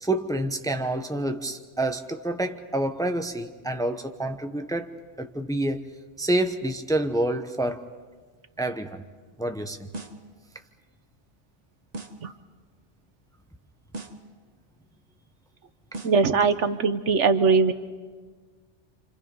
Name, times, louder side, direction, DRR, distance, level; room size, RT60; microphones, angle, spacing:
voice 1, 0.0-5.9 6.2-7.9 8.6-9.0 9.4-9.9, right 1 dB, 5° left, 6 dB, 0.8 m, -28 dB
sound 1, 9.9-10.3 11.9-12.3 13.9-14.3 15.9-16.3, right 2 dB, 35° right, 1.3 m, -39 dB
voice 2, 16.0-17.7, right 4 dB, 80° right, 10 dB, 1.3 m, -21 dB
29.0 x 26.5 x 5.4 m, 1.4 s
omnidirectional pair, 1.2 m